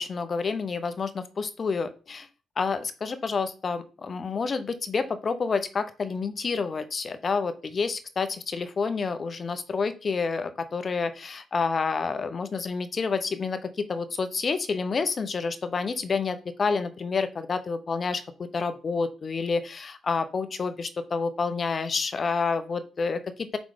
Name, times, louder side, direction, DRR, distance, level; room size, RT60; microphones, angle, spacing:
voice 1, 0.0-2.3 2.6-23.6, left 4 dB, 40° left, 11 dB, 0.7 m, -29 dB
5.0 x 3.8 x 5.0 m, 0.35 s
cardioid pair, 90°, 0 cm